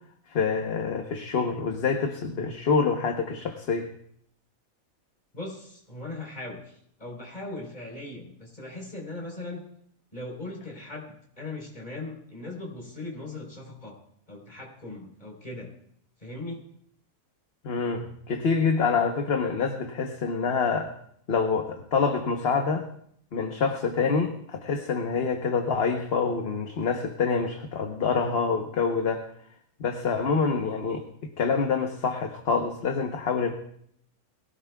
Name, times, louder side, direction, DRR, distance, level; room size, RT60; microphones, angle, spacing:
voice 1, 0.3-3.9 17.6-20.9 21.3-22.9 23.3-29.2 29.8-33.5, left 5 dB, 50° left, 4 dB, 1.1 m, -26 dB
voice 2, 5.3-9.6 10.1-14.0 14.3-15.7 16.2-16.7, left 2 dB, 30° left, -1 dB, 3.9 m, -39 dB
22.0 x 16.5 x 2.3 m, 0.68 s
omnidirectional pair, 1.5 m